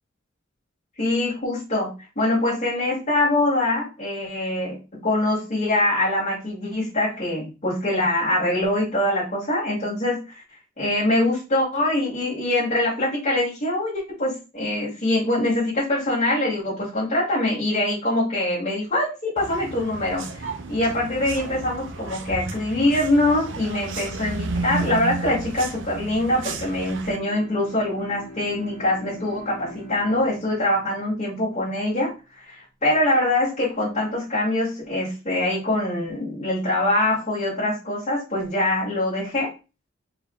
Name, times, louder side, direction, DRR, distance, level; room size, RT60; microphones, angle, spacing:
voice 1, 1.0-10.4 10.8-39.5, left 1 dB, 35° left, -9 dB, 2.1 m, -24 dB
sound 1, 19.4-27.2, right 3 dB, 65° right, 0.6 m, -33 dB
Bowed string instrument, 26.9-32.3, left 2 dB, 55° left, 1.8 m, -43 dB
4.8 x 3.8 x 2.3 m, 0.30 s
head